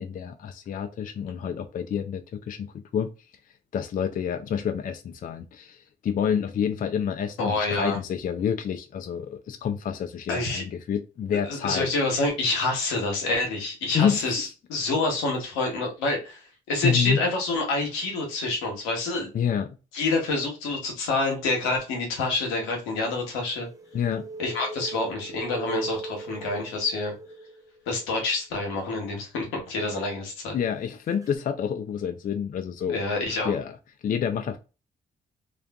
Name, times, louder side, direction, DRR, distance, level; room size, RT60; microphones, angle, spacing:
voice 1, 0.0-3.1 3.7-11.9 13.9-14.4 16.8-17.2 19.3-19.7 23.9-24.3 30.5-33.0 33.4-33.8 34.0-34.6, left 8 dB, 45° left, 0.4 m, -28 dB
voice 2, 7.4-8.0 10.3-10.6 11.5-16.4 16.7-19.3 19.9-23.7 24.4-27.1 27.9-30.6 32.9-33.5, left 2 dB, 85° left, 0.8 m, -27 dB
sound 1, 23.2-28.0 31.2-31.4, right 3 dB, 15° right, 0.5 m, -39 dB
2.4 x 2.3 x 2.2 m
hypercardioid pair, 45°, 20 cm